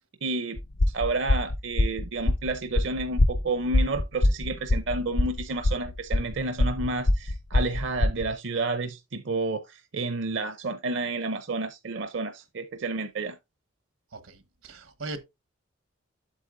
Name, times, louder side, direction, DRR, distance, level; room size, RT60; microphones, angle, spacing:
voice 1, 0.2-0.6 0.9-13.4, right 3 dB, 60° right, 0.6 m, -30 dB
sound 1, 0.6-8.3, left 1 dB, 55° left, 0.6 m, -24 dB
voice 2, 14.1-15.2, right 2 dB, 85° right, 1.2 m, -39 dB
8.3 x 7.7 x 2.5 m
head